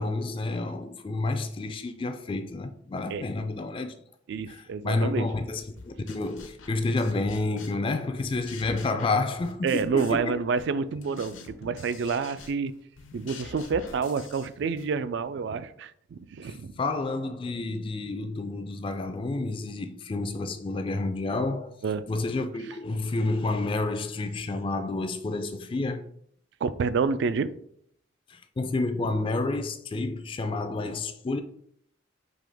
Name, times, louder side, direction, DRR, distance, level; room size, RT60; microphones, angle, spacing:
voice 1, 0.0-3.9 4.5-10.4 16.5-21.8 22.1-26.0 28.3-31.4, left 2 dB, 25° left, 0.3 m, -30 dB
voice 2, 4.3-5.3 9.6-12.7 13.1-16.7 21.8-22.0 26.6-27.5, right 5 dB, 60° right, 0.3 m, -28 dB
sound 1, 5.8-7.9 8.2-10.3 10.6-14.9, left 3 dB, 85° left, 0.7 m, -46 dB
5.4 x 2.9 x 3.4 m
head